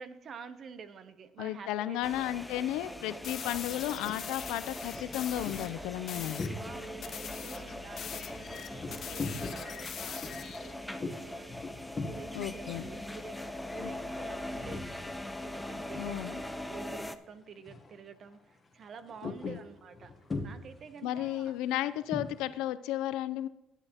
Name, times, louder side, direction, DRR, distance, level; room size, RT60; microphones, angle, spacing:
voice 1, 0.0-2.3 3.3-3.8 6.2-11.7 12.0-15.0 15.4-20.1 20.4-21.6, right 5 dB, 40° right, 12 dB, 0.7 m, -49 dB
voice 2, 1.4-6.4 12.3-12.9 13.8-13.9 16.0-16.4 19.2-19.6 21.0-23.5, left 13 dB, 90° left, 15 dB, 0.4 m, -34 dB
sound 1, 2.0-17.2, left 1 dB, 5° left, 0.4 m, -41 dB
sound 2, 3.2-5.7 6.1-6.5 7.0-10.7, left 8 dB, 45° left, 0.7 m, -42 dB
sound 3, 3.9-4.3 4.8-7.1 7.4-15.3 15.5-16.7 16.9-17.2 17.6-18.0 18.3-22.5, left 3 dB, 20° left, 1.0 m, -42 dB
11.0 x 9.8 x 2.9 m, 0.93 s
cardioid pair, 130°, 0 cm